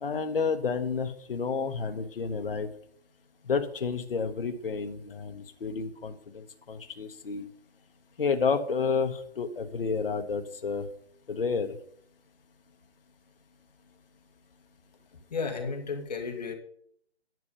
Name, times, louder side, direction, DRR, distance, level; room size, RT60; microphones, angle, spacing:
voice 1, 0.0-2.7 3.4-7.5 8.2-10.9 11.3-11.8, left 5 dB, 55° left, 8 dB, 1.2 m, -30 dB
voice 2, 15.3-16.6, left 4 dB, 40° left, 3 dB, 1.9 m, -33 dB
11.0 x 6.9 x 5.4 m, 0.64 s
hypercardioid pair, 165°, 33 cm